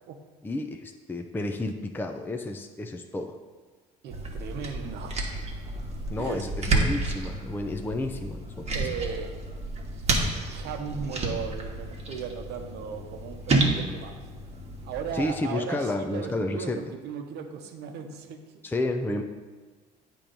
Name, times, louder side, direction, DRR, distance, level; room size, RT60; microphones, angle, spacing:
voice 1, 0.4-3.4 6.1-8.8 15.1-16.8 18.6-19.2, left 2 dB, 10° left, 5 dB, 0.5 m, -31 dB
voice 2, 4.0-5.3 6.1-6.5 8.7-9.4 10.2-14.2 14.8-18.4, right 6 dB, 70° right, 5 dB, 0.8 m, -37 dB
sound 1, 4.1-15.3, right 2 dB, 35° right, 1.3 m, -30 dB
8.5 x 3.1 x 5.2 m, 1.4 s
supercardioid pair, 70°, 18 cm